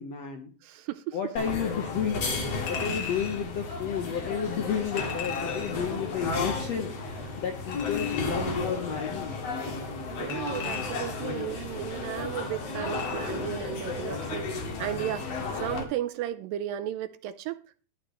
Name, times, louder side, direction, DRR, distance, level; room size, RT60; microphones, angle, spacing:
voice 1, 0.0-0.5 1.1-2.3 2.7-9.4 11.0-11.6, left 8 dB, 65° left, 1.7 m, -32 dB
voice 2, 0.6-1.2 10.1-15.3 15.5-17.6, right 12 dB, 80° right, 2.2 m, -34 dB
sound 1, 1.4-15.8, left 3 dB, 50° left, 2.7 m, -33 dB
Chink clink, 2.7-3.4 5.0-5.9 7.7-8.5 10.3-11.3 12.9-13.5 13.9-14.0, left 7 dB, 85° left, 4.1 m, -38 dB
12.0 x 11.5 x 3.1 m
omnidirectional pair, 4.2 m